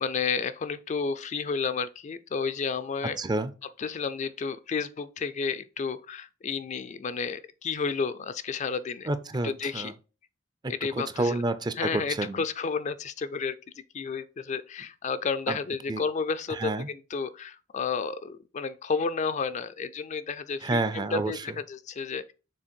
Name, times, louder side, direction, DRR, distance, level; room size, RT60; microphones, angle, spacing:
voice 1, 0.0-3.2 3.8-9.1 9.4-9.9 10.7-11.4 11.8-13.6 13.9-22.3, left 5 dB, 40° left, 0.4 m, -31 dB
voice 2, 3.2-3.5 9.1-9.9 10.6-12.4 15.5-15.6 15.9-16.0 16.5-16.9 20.6-21.6, right 2 dB, 20° right, 0.4 m, -29 dB
6.3 x 3.8 x 4.4 m
head